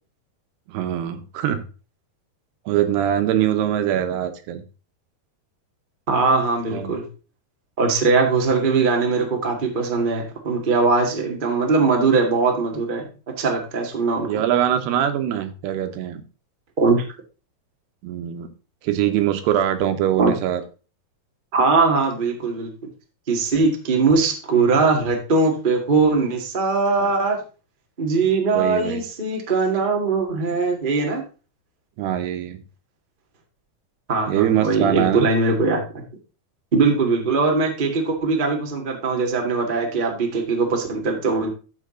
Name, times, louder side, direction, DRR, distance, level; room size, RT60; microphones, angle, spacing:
voice 1, 0.7-1.7 2.7-4.6 6.7-6.9 14.2-16.2 18.0-18.5 18.8-20.6 27.0-27.1 28.5-29.0 32.0-32.6 34.3-35.3, right 11 dB, 85° right, 8 dB, 3.2 m, -22 dB
voice 2, 6.1-7.1 7.8-13.1 13.4-14.4 16.8-17.0 20.2-20.3 21.5-22.7 23.3-27.4 28.0-31.2 34.1-36.0 36.7-41.5, right 4 dB, 55° right, 2 dB, 0.5 m, -20 dB
13.5 x 5.3 x 3.8 m, 0.34 s
omnidirectional pair, 4.6 m